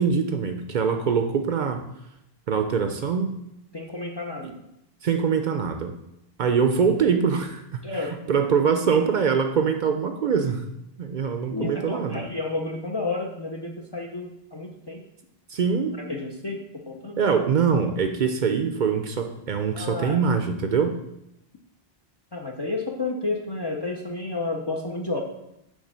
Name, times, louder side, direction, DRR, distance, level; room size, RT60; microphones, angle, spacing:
voice 1, 0.0-1.9 2.5-3.3 4.4-4.5 5.0-5.9 6.4-7.9 8.3-10.7 11.0-12.2 15.5-16.0 17.2-20.9, right 6 dB, 55° right, 6 dB, 0.6 m, -23 dB
voice 2, 3.7-4.5 7.8-8.2 11.5-15.0 16.0-17.2 19.7-20.2 22.3-25.2, left 3 dB, 35° left, 2 dB, 0.4 m, -31 dB
7.2 x 3.2 x 5.4 m, 0.85 s
omnidirectional pair, 1.0 m